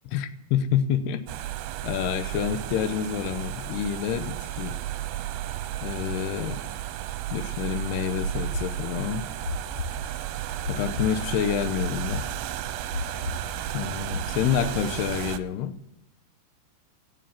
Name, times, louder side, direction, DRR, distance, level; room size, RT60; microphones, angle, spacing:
voice 1, 0.1-1.3 1.8-4.8 5.8-6.6 7.3-9.3 10.7-12.3 13.7-15.7, left 9 dB, 80° left, 11 dB, 2.9 m, -28 dB
sound 1, 1.3-15.4, right 12 dB, 75° right, 2.5 m, -33 dB
sound 2, 8.2-14.3, left 2 dB, 65° left, 1.6 m, -34 dB
16.5 x 7.6 x 7.4 m, 0.82 s
omnidirectional pair, 4.6 m